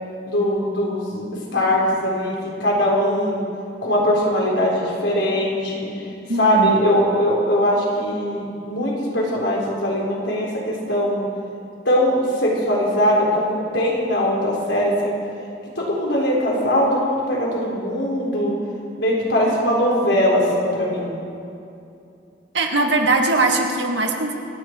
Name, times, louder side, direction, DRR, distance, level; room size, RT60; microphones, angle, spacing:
voice 1, 0.3-1.2 1.5-2.3 2.6-3.4 3.8-5.9 6.4-11.3 11.8-15.1 15.8-18.6 19.0-21.2, equal, 85° left, -4 dB, 4.0 m, -20 dB
voice 2, 6.3-6.8 22.5-24.3, right 2 dB, 75° right, 2 dB, 1.8 m, -20 dB
27.0 x 9.1 x 4.5 m, 2.6 s
head